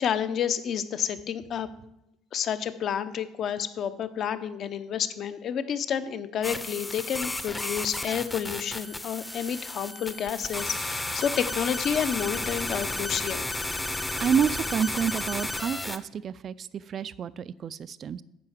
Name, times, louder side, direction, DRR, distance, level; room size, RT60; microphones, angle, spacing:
voice 1, 0.0-1.7 2.3-13.5, left 8 dB, 50° left, 12 dB, 0.8 m, -30 dB
sound 1, 6.4-16.0, left 2 dB, 10° left, 0.7 m, -33 dB
voice 2, 13.9-18.2, right 7 dB, 40° right, 18 dB, 0.3 m, -29 dB
9.6 x 5.6 x 7.4 m, 0.83 s
cardioid pair, 125°, 0 cm